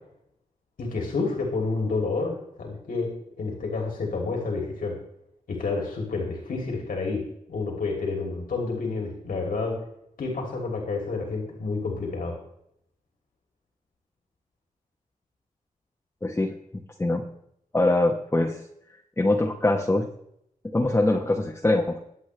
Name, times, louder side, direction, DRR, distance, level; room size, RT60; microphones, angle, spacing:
voice 1, 0.8-3.1 3.4-4.9 5.5-7.2 7.5-9.7 10.2-12.4, left 3 dB, 85° left, 0 dB, 3.0 m, -29 dB
voice 2, 16.2-16.6 17.0-17.2 17.7-18.6 19.2-20.1 20.7-22.0, left 2 dB, 15° left, 0 dB, 1.1 m, -23 dB
22.0 x 8.4 x 3.3 m, 0.74 s
wide cardioid pair, 130°, 14 cm